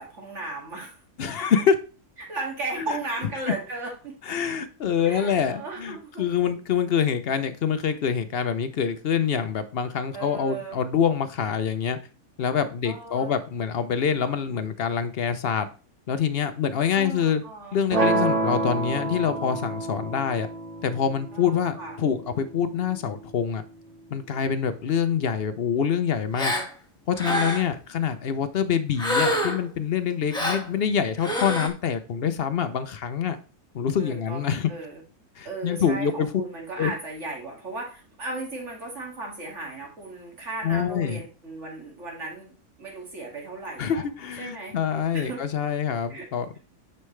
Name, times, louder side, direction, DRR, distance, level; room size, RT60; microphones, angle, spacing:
voice 1, 0.0-1.0 2.2-4.2 5.0-6.2 10.1-10.8 12.8-13.4 16.9-17.8 21.3-21.9 26.5-26.6 27.1-27.5 34.0-34.4 34.7-35.0 35.4-44.0 44.4-44.8 45.1-45.4 46.1-46.3, right 2 dB, 45° right, -1 dB, 2.6 m, -36 dB
voice 2, 1.2-1.8 2.8-3.0 4.3-12.0 12.4-15.7 16.1-17.4 17.7-20.5 20.8-23.6 24.1-26.6 27.1-33.4 33.7-34.7 35.4-36.3 36.8-36.9 40.6-41.2 43.8-46.6, left 7 dB, 60° left, 11 dB, 0.6 m, -25 dB
sound 1, 17.9-23.9, right 3 dB, 30° right, 1.0 m, -29 dB
Gasp, 26.4-26.7 27.2-27.7 29.0-29.7 30.3-30.7 31.2-31.7, left 1 dB, 5° left, 1.5 m, -26 dB
9.6 x 5.6 x 3.2 m, 0.36 s
omnidirectional pair, 1.7 m